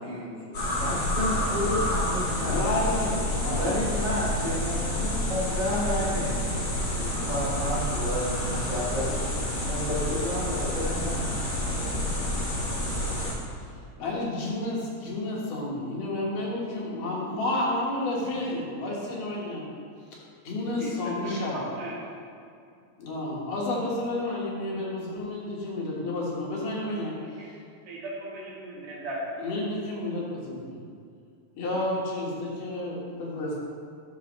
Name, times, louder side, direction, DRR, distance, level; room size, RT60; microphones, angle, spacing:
voice 1, 0.0-2.8 3.4-12.0, left 1 dB, 40° right, -8 dB, 2.1 m, -32 dB
sound 1, 0.5-13.3, left 1 dB, 40° left, 1.6 m, -29 dB
voice 2, 2.4-3.8 14.0-19.7 20.4-21.7 23.0-27.1 29.4-30.8 31.6-33.6, left 2 dB, 90° left, -4 dB, 3.1 m, -30 dB
voice 3, 20.8-22.0 27.0-27.5 27.9-29.5, right 1 dB, 65° right, -5 dB, 2.6 m, -38 dB
9.7 x 6.2 x 3.1 m, 2.3 s
omnidirectional pair, 3.6 m